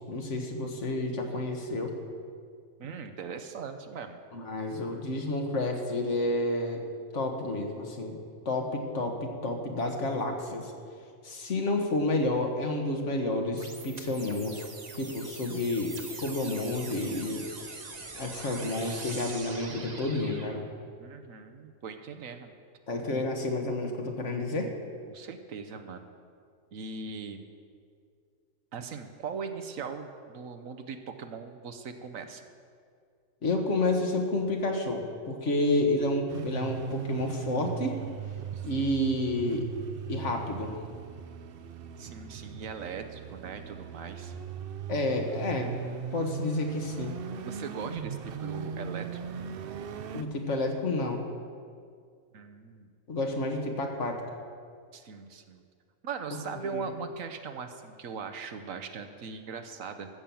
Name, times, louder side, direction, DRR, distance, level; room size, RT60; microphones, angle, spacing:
voice 1, 0.1-1.9 4.3-6.8 7.1-8.2 8.4-10.7 11.2-14.6 14.9-17.4 18.1-20.7 22.9-24.7 33.4-38.0 38.6-39.7 40.1-40.7 44.9-45.8 46.1-47.1 50.1-51.2 53.1-54.2 56.6-56.9, left 2 dB, 60° left, 3 dB, 1.7 m, -30 dB
voice 2, 2.8-4.2 21.0-22.5 23.1-23.3 25.1-26.1 26.7-27.4 28.7-32.4 38.5-38.9 41.9-44.4 47.4-49.2 52.3-52.9 54.9-55.6 56.0-60.1, right 5 dB, 75° right, 8 dB, 1.3 m, -40 dB
sound 1, 13.6-20.6, right 3 dB, 35° right, 1.1 m, -43 dB
sound 2, 36.3-50.2, right 7 dB, 60° right, 0.6 m, -39 dB
14.0 x 7.5 x 7.0 m, 2.2 s
omnidirectional pair, 1.4 m